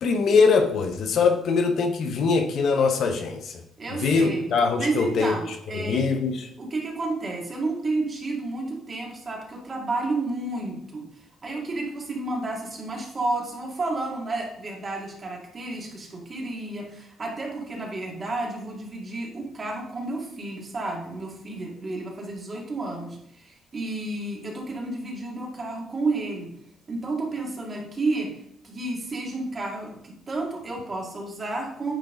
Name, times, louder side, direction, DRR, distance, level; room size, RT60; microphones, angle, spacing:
voice 1, 0.0-3.6 4.0-5.3 5.7-6.5, left 4 dB, 70° left, 6 dB, 0.9 m, -22 dB
voice 2, 3.8-4.5 4.8-6.1 6.6-11.1 11.4-26.5 26.9-28.3 28.6-32.0, right 2 dB, 35° right, -1 dB, 2.4 m, -31 dB
9.2 x 4.8 x 3.9 m, 0.76 s
cardioid pair, 90°, 0 cm